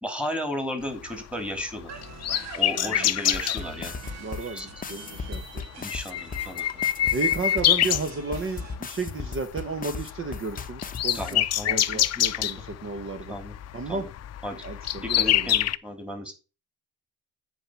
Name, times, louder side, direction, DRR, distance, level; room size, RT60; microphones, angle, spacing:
voice 1, 0.0-1.9 2.6-4.0 4.4-4.7 5.8-6.8 11.1-12.5 13.3-13.6 13.9-14.1 14.4-14.6 15.0-16.3, equal, 5° right, 5 dB, 2.8 m, -34 dB
sound 1, 1.0-3.6 4.5-4.8 5.1-5.2 5.5-8.7 9.0-9.4 9.6-15.8, left 12 dB, 55° left, 0.6 m, -26 dB
sound 2, 1.9-8.7, right 4 dB, 60° right, 2.1 m, -43 dB
voice 2, 2.7-3.1 4.2-5.4 7.1-13.3 13.7-14.1 14.6-15.5, right 4 dB, 45° right, 7 dB, 1.3 m, -33 dB
sound 3, 3.3-11.3, left 5 dB, 30° left, 0.8 m, -36 dB
8.9 x 4.6 x 5.8 m, 0.31 s
cardioid pair, 90°, 30 cm